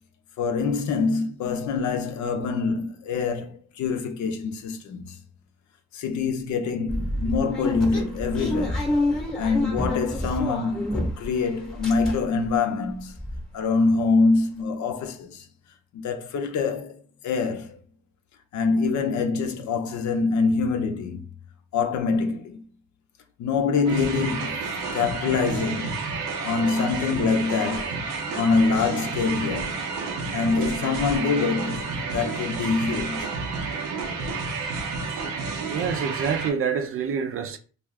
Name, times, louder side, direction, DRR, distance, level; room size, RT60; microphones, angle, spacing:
voice 1, 0.4-5.2 5.9-8.9 9.4-13.1 13.5-15.4 15.9-17.0 17.2-17.8 18.5-21.2 21.7-22.6 23.4-24.6 24.9-26.0 26.4-28.1 28.3-29.8 30.3-33.3, left 4 dB, 70° left, 0.6 m, -25 dB
sound 1, 6.9-11.4 11.6-12.5 12.9-13.0 13.2-13.4, left 1 dB, ahead, 0.9 m, -28 dB
sound 2, 23.9-36.5, right 4 dB, 90° right, 0.7 m, -30 dB
voice 2, 35.7-37.6, right 6 dB, 45° right, 0.4 m, -27 dB
2.4 x 2.4 x 3.2 m
cardioid pair, 90°, 30 cm